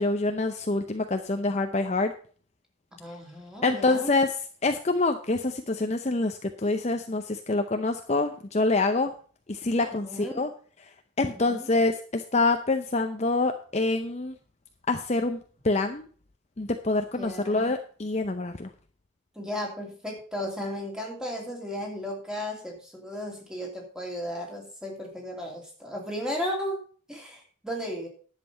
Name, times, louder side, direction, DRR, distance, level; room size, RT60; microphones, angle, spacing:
voice 1, 0.0-2.1 3.6-4.3 4.6-9.1 9.5-10.5 11.2-14.3 14.9-15.4 15.6-16.1 16.6-18.7, left 2 dB, 30° left, 6 dB, 0.6 m, -26 dB
voice 2, 2.9-4.1 9.8-10.5 11.2-11.7 17.2-17.7 19.3-26.8 27.1-28.1, equal, 5° right, 0 dB, 2.7 m, -35 dB
11.0 x 7.6 x 5.5 m, 0.42 s
head